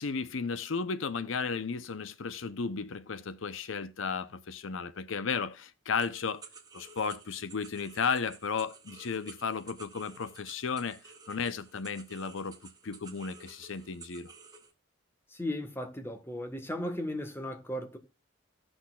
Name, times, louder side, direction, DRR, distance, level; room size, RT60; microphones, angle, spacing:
voice 1, 0.0-6.4 6.7-11.0 11.3-14.3, left 5 dB, 75° left, 0.6 m, -34 dB
sound 1, 6.0-14.7, right 5 dB, 20° right, 1.3 m, -53 dB
voice 2, 15.3-18.0, left 1 dB, 10° left, 1.3 m, -36 dB
17.0 x 6.2 x 2.3 m
head